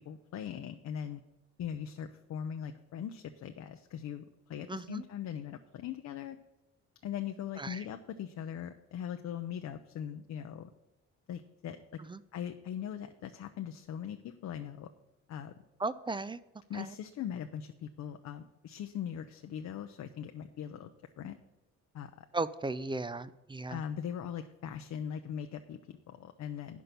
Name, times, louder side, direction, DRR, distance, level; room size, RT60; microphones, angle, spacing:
voice 1, 0.1-1.2 1.6-6.4 7.0-10.7 11.3-11.8 12.3-14.9 15.3-15.5 16.7-20.9 21.2-21.4 21.9-22.3 23.7-26.8, left 9 dB, 65° left, 6 dB, 0.7 m, -40 dB
voice 2, 4.7-5.0 7.6-7.8 12.1-12.2 15.8-16.4 16.7-16.9 22.3-23.8, right 3 dB, 15° right, 15 dB, 0.4 m, -36 dB
9.4 x 6.1 x 6.8 m, 0.99 s
cardioid pair, 90°, 30 cm